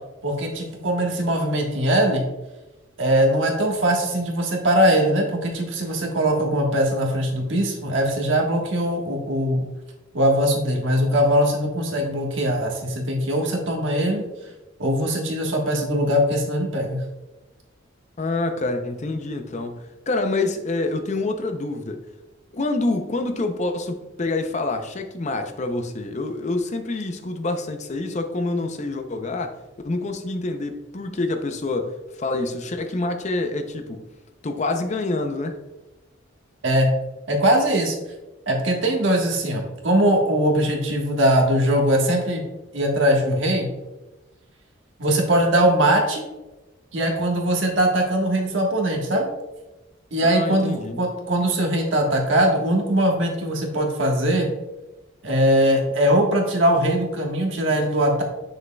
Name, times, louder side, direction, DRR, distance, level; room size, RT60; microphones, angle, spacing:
voice 1, 0.2-2.3 3.0-9.7 10.1-14.2 14.8-17.0 36.6-36.9 37.3-38.0 38.5-42.4 42.7-43.7 45.0-46.2 46.9-49.3 50.1-54.5 55.2-58.2, right 1 dB, 70° right, 1 dB, 1.3 m, -21 dB
voice 2, 18.2-22.0 22.5-29.6 29.8-34.0 34.4-35.6 50.2-51.0, left 2 dB, 35° left, 7 dB, 0.5 m, -27 dB
7.4 x 6.3 x 2.2 m, 1.1 s
head